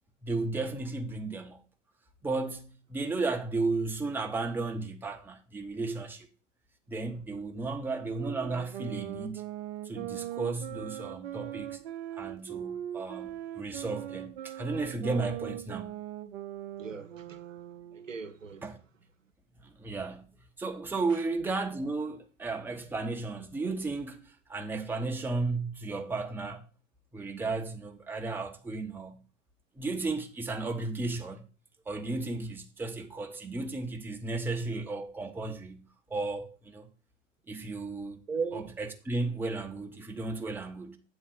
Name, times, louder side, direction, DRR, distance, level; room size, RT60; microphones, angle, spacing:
voice 1, 0.2-1.6 2.2-6.3 6.9-9.4 9.8-11.8 12.1-15.9 18.6-18.8 19.6-26.7 27.1-29.2 29.8-31.4 31.9-36.9 37.5-38.2 38.5-41.0, right 3 dB, 5° right, 0.7 m, -34 dB
sound 1, 8.1-18.2, right 12 dB, 55° right, 0.7 m, -40 dB
voice 2, 16.8-17.6 17.9-18.6 21.1-21.2 38.3-38.7, right 5 dB, 90° right, 0.7 m, -37 dB
7.9 x 4.0 x 5.6 m
figure-of-eight pair, 85°, 37 cm